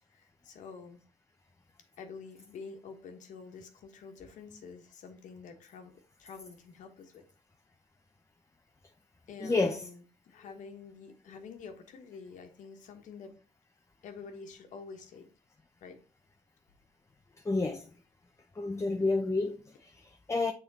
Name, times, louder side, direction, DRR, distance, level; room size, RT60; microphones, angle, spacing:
voice 1, 0.1-1.0 2.0-5.9 6.2-7.2 9.3-13.4 14.0-15.3 15.8-16.0, left 5 dB, 75° left, 1.3 m, -48 dB
voice 2, 9.4-9.9 17.4-17.9 18.6-20.5, left 3 dB, 20° left, 0.7 m, -30 dB
6.7 x 3.7 x 4.1 m
supercardioid pair, 65°, 13 cm